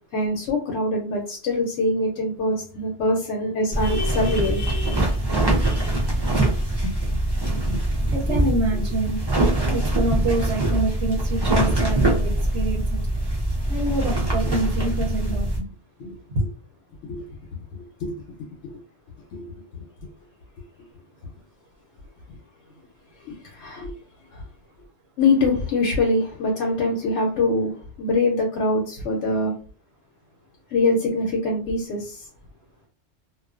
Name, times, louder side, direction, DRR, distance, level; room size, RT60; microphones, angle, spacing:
voice 1, 0.1-5.2 5.6-6.1 8.3-8.4 17.1-17.3 18.0-18.1 19.3-19.5 22.3-22.4 23.2-23.9 24.3-24.4 25.2-29.5 30.7-32.3, left 2 dB, 90° left, 0 dB, 0.9 m, -24 dB
sound 1, 3.7-15.6, right 1 dB, 35° right, 0.4 m, -23 dB
voice 2, 8.1-9.2 9.7-13.0 13.7-15.7 16.0-16.4, right 2 dB, 75° right, 0 dB, 0.9 m, -27 dB
2.4 x 2.1 x 2.4 m, 0.38 s
omnidirectional pair, 1.2 m